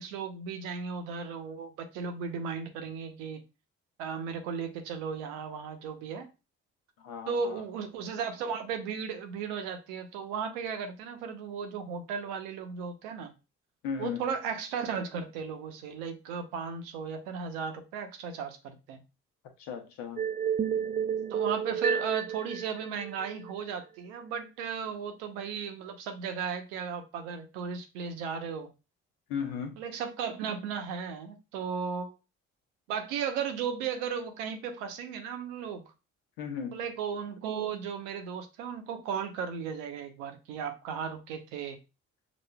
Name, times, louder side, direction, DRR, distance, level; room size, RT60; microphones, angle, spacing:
voice 1, 0.0-3.4 4.0-6.3 7.3-13.3 14.0-19.0 21.3-28.7 29.8-32.1 32.9-35.8 36.7-41.8, right 6 dB, 80° right, 0.7 m, -35 dB
voice 2, 7.0-7.6 13.8-14.2 19.6-20.2 29.3-29.8 36.4-36.8, left 7 dB, 75° left, 0.8 m, -36 dB
sound 1, 20.2-23.5, right 7 dB, 25° right, 0.4 m, -31 dB
5.9 x 2.5 x 2.2 m
hypercardioid pair, 45°, 37 cm